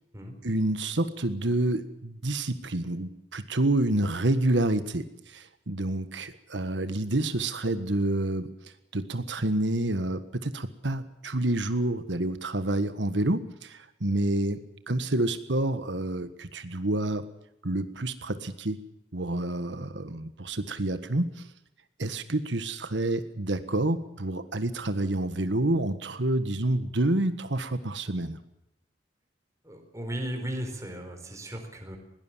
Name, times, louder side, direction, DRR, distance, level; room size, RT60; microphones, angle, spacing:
voice 1, 0.4-8.5 8.9-17.2 17.6-18.8 19.1-21.5 22.0-28.4, right 1 dB, 75° right, 11 dB, 1.6 m, -28 dB
voice 2, 29.6-32.0, right 1 dB, 20° right, 4 dB, 4.4 m, -36 dB
21.5 x 18.5 x 7.4 m, 0.84 s
head